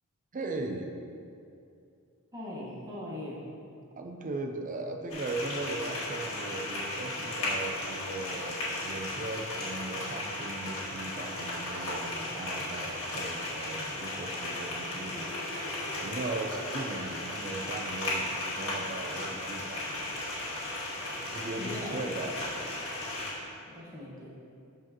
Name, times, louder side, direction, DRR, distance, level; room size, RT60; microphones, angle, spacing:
voice 1, 0.3-0.9 4.0-15.7 16.0-18.3 18.6-19.8 20.1-20.3 21.2-22.3, right 2 dB, 35° right, 3 dB, 0.5 m, -38 dB
voice 2, 2.3-3.4 21.6-22.3 23.7-24.3, left 1 dB, 15° right, -6 dB, 1.5 m, -40 dB
sound 1, 5.1-23.3, left 1 dB, 65° left, 1.8 m, -35 dB
sound 2, 12.1-17.8, left 1 dB, 25° left, 1.1 m, -49 dB
12.0 x 4.7 x 3.0 m, 2.5 s
head